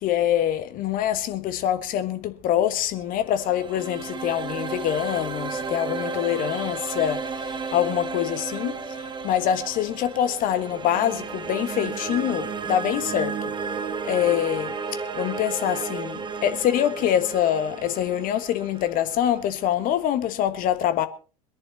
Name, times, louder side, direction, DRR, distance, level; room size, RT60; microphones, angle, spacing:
voice 1, 0.0-13.4 14.0-14.7 15.1-21.1, left 11 dB, 45° left, 1.5 m, -25 dB
sound 1, 3.0-20.1, right 5 dB, 20° right, 1.5 m, -33 dB
22.0 x 10.5 x 4.1 m
figure-of-eight pair, 75°, 20 cm